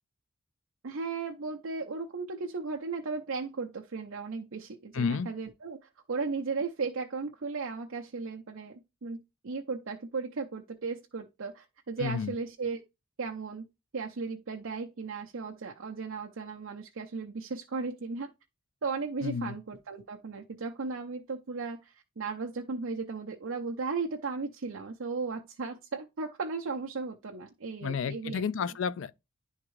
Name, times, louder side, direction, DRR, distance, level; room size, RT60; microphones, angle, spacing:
voice 1, 0.8-12.8 13.2-13.7 13.9-18.3 18.8-28.7, right 4 dB, 60° right, 0.6 m, -36 dB
voice 2, 4.9-5.3 12.0-12.3 19.2-19.6 27.8-29.1, left 6 dB, 60° left, 0.3 m, -31 dB
10.5 x 3.6 x 3.1 m
head